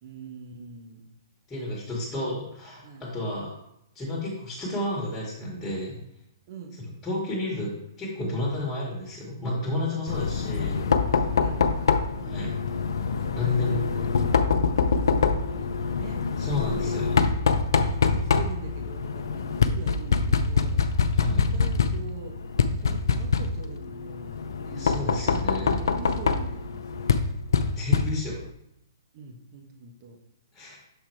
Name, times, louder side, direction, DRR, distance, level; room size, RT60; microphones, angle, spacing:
voice 1, 0.0-1.1 1.9-2.2 2.8-3.3 6.5-6.8 11.2-12.5 13.2-16.2 16.6-17.4 17.8-20.8 21.3-22.4 22.7-25.5 25.8-27.2 29.1-30.2, right 5 dB, 45° right, 3 dB, 1.3 m, -43 dB
voice 2, 1.5-3.5 3.9-6.0 7.0-7.7 8.0-10.8 12.3-12.5 13.3-13.8 16.4-17.1 21.1-21.5 24.7-25.7 27.7-28.4 30.5-30.8, left 2 dB, 10° left, -4 dB, 2.2 m, -31 dB
Knock, 10.1-28.5, left 5 dB, 75° left, 0.6 m, -25 dB
6.8 x 3.7 x 4.7 m, 0.81 s
hypercardioid pair, 140°, 2 cm